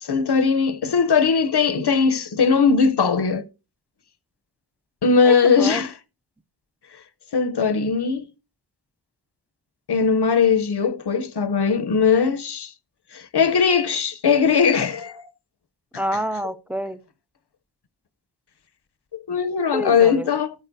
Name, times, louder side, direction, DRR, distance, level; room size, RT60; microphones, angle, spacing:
voice 1, 0.0-3.5 5.0-5.9 7.3-8.2 9.9-12.7 13.1-15.2 19.3-20.5, left 5 dB, 65° left, 0.7 m, -19 dB
voice 2, 5.2-5.8 16.0-17.0 19.7-20.3, equal, 5° right, 0.4 m, -27 dB
14.0 x 9.1 x 2.6 m
wide cardioid pair, 65°, 44 cm